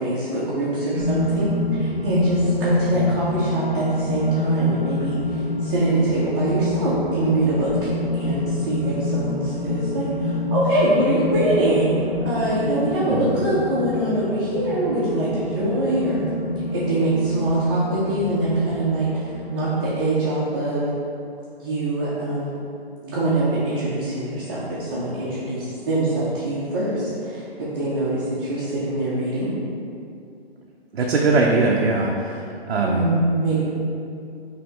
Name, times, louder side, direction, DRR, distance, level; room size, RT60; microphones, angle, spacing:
voice 1, 0.0-1.5 1.8-11.9 12.2-16.2 16.7-20.8 21.6-22.6 23.0-29.5 32.8-33.6, right 1 dB, 25° right, -10 dB, 0.5 m, -23 dB
sound 1, 0.9-19.9, left 2 dB, 25° left, 1.0 m, -27 dB
voice 2, 30.9-33.1, right 3 dB, 85° right, -1 dB, 0.5 m, -21 dB
4.2 x 2.7 x 3.2 m, 2.5 s
hypercardioid pair, 150°, 31 cm